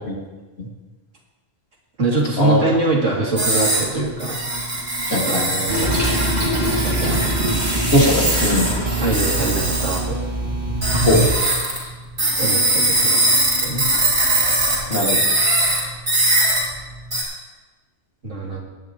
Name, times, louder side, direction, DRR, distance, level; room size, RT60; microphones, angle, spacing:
voice 1, 2.0-4.4 5.1-6.0 6.8-7.2 9.0-10.2 12.4-13.8 18.2-18.6, right 2 dB, 80° right, -3 dB, 2.9 m, -23 dB
sound 1, 3.4-3.8 4.2-10.0 10.8-11.8 12.2-15.8 16.1-16.6 17.1-17.2, right 2 dB, 60° right, 4.2 m, -21 dB
voice 2, 5.1-5.6 7.9-8.7 11.0-11.2 11.8-11.9 14.9-15.2, left 1 dB, 55° left, -1 dB, 2.4 m, -19 dB
Toilet flush, 5.7-11.3, right 1 dB, 35° right, 2.2 m, -23 dB
18.0 x 11.0 x 3.0 m, 1.2 s
omnidirectional pair, 1.3 m